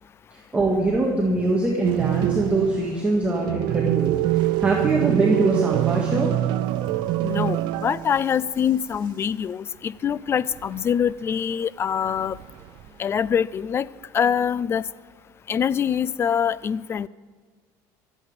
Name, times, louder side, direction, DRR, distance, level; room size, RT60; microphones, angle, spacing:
voice 1, 0.3-6.4, right 2 dB, 15° right, -2 dB, 1.9 m, -23 dB
sound 1, 1.8-8.4 8.6-8.7 10.5-11.1 12.2-12.9, right 15 dB, 65° right, 0.5 m, -25 dB
voice 2, 7.2-12.4 13.0-13.9 14.1-14.8 15.5-17.1, left 8 dB, 30° left, 20 dB, 0.4 m, -24 dB
25.5 x 8.5 x 5.2 m, 1.5 s
cardioid pair, 125°, 8 cm